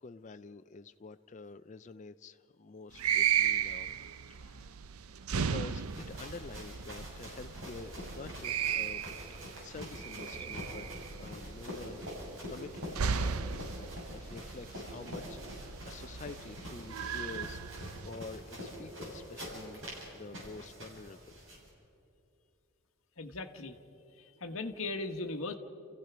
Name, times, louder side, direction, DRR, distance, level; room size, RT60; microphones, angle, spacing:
voice 1, 0.0-3.9 4.3-4.7 5.3-9.0 9.3-10.9 11.2-13.0 13.5-17.8 18.0-19.8 20.1-21.2, left 3 dB, 35° left, 10 dB, 0.4 m, -48 dB
sound 1, 2.9-18.1, right 8 dB, 80° right, 0.6 m, -36 dB
sound 2, 5.7-21.7, equal, 60° right, 6.7 m, -45 dB
voice 2, 23.2-23.8 24.4-25.5, left 3 dB, 65° left, 6 dB, 1.2 m, -37 dB
29.0 x 15.5 x 6.0 m, 2.7 s
head